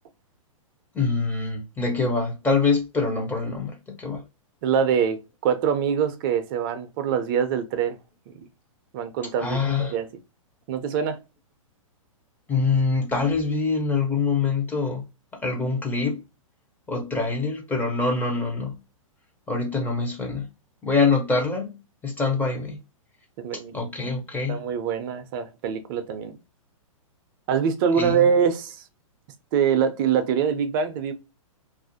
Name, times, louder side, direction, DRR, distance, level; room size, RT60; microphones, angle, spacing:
voice 1, 0.9-4.2 9.4-9.9 12.5-15.0 15.4-16.2 16.9-18.7 19.5-20.4 20.8-21.7 22.0-22.8 23.7-24.6 27.9-28.2, left 4 dB, 10° left, 0.6 m, -24 dB
voice 2, 4.6-5.2 5.4-8.0 8.3-8.4 8.9-10.1 10.7-11.2 23.4-23.8 24.5-26.4 27.5-28.8 29.5-31.1, right 7 dB, 40° right, 0.4 m, -24 dB
2.4 x 2.0 x 2.7 m
hypercardioid pair, 120°, 18 cm